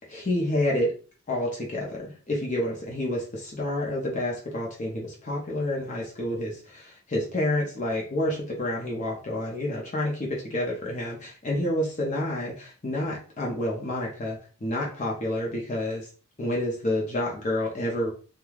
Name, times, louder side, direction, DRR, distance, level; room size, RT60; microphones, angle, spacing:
voice 1, 0.1-0.9 1.3-16.0 16.4-18.1, left 1 dB, 35° left, -2 dB, 0.5 m, -29 dB
3.2 x 2.2 x 2.2 m, 0.39 s
head